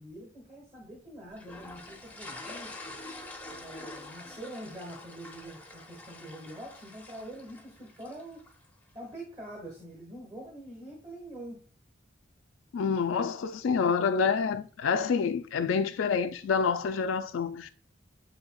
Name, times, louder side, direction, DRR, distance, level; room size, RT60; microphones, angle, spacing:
voice 1, 0.0-3.0 3.5-8.4 8.9-11.6, right 1 dB, 30° right, 1.2 m, -45 dB
sound 1, 1.4-8.6, left 2 dB, 10° left, 0.5 m, -46 dB
voice 2, 12.7-17.7, left 5 dB, 85° left, 0.4 m, -27 dB
7.8 x 2.8 x 2.2 m
head